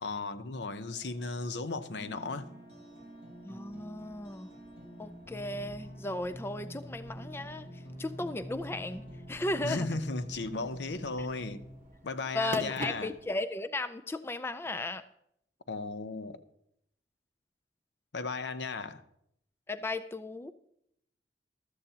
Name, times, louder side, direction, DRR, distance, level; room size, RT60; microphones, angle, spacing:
voice 1, 0.0-2.5 9.6-11.6 12.0-13.1 15.7-16.4 18.1-19.0, left 3 dB, 80° left, 0.7 m, -36 dB
sound 1, 0.5-13.4, right 1 dB, 45° right, 1.1 m, -50 dB
sound 2, 1.8-11.8, equal, 35° left, 3.9 m, -46 dB
voice 2, 3.4-4.5 5.0-7.7 8.0-9.0 9.3-9.9 12.3-15.0 19.7-20.5, left 2 dB, 15° left, 0.4 m, -35 dB
14.0 x 13.0 x 2.8 m
head